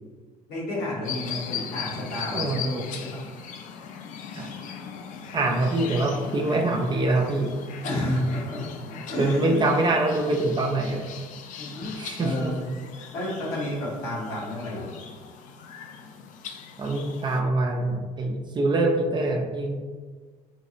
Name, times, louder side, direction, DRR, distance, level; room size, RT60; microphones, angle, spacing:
voice 1, 0.5-3.2 7.8-9.7 11.6-12.6 13.0-14.9, left 1 dB, 60° left, -5 dB, 1.2 m, -31 dB
sound 1, 1.0-17.4, left 7 dB, 40° left, 0.4 m, -39 dB
voice 2, 5.3-7.5 9.2-11.1 12.0-12.5 16.8-19.8, right 2 dB, 25° right, 2 dB, 0.4 m, -24 dB
4.3 x 2.3 x 2.9 m, 1.5 s
figure-of-eight pair, 55°, 20 cm